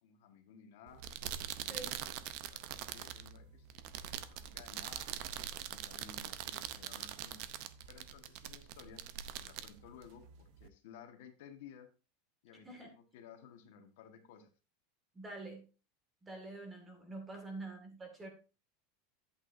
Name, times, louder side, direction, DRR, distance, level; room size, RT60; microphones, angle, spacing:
voice 1, 0.0-1.0 1.6-1.9 2.2-5.1 5.7-7.5 7.9-9.0 9.4-11.9 12.4-14.5, left 7 dB, 65° left, 5 dB, 1.4 m, -56 dB
sound 1, 0.9-10.7, right 11 dB, 50° right, 0.6 m, -44 dB
voice 2, 1.6-2.0 12.7-12.9 15.1-15.6 16.2-18.3, right 2 dB, 10° right, 3 dB, 1.9 m, -46 dB
10.5 x 8.5 x 2.6 m, 0.33 s
supercardioid pair, 170°, 0 cm